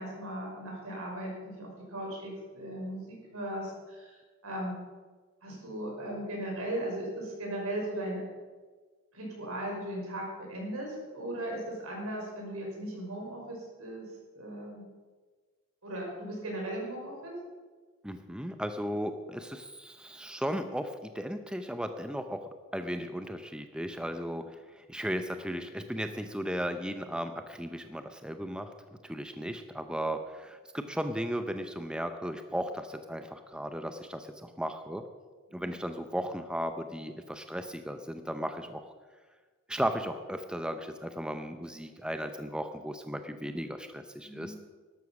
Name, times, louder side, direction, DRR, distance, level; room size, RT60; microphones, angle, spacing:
voice 1, 0.0-4.1 4.4-4.7 5.4-8.2 9.1-14.1 14.3-14.8 15.8-17.3 24.3-24.4 35.5-35.7 44.2-44.5, right 1 dB, 85° right, -1 dB, 5.5 m, -37 dB
voice 2, 18.0-22.4 22.7-28.7 29.0-35.1 35.5-38.9 39.7-44.6, equal, 5° right, 8 dB, 0.6 m, -36 dB
12.5 x 12.5 x 5.9 m, 1.4 s
head